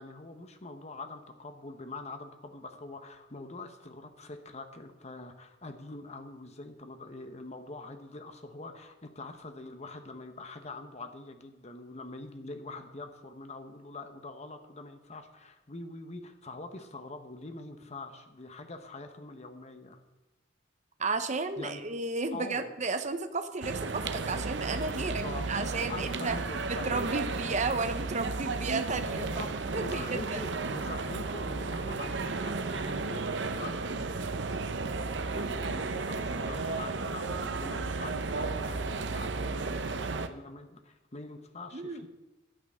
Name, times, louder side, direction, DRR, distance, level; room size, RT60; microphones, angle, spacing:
voice 1, 0.0-20.0 21.6-21.8 22.3-22.7 24.8-27.6 29.0-34.2 35.3-42.1, left 2 dB, 35° left, 7 dB, 1.1 m, -44 dB
voice 2, 21.0-26.4 26.7-29.5 29.7-30.4 41.7-42.1, right 3 dB, 40° right, 8 dB, 0.9 m, -33 dB
sound 1, 23.6-40.3, right 3 dB, 70° right, 0.7 m, -34 dB
11.0 x 9.0 x 6.4 m, 1.1 s
head